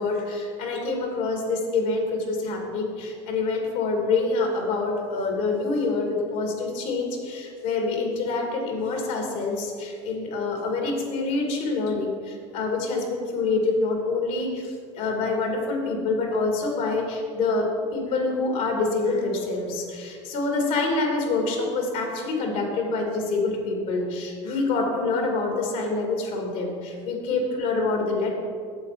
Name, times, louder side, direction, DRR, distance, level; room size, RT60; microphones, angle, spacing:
voice 1, 0.0-28.3, left 3 dB, 65° left, 1 dB, 2.4 m, -26 dB
8.0 x 7.4 x 5.1 m, 2.1 s
hypercardioid pair, 85°, 14 cm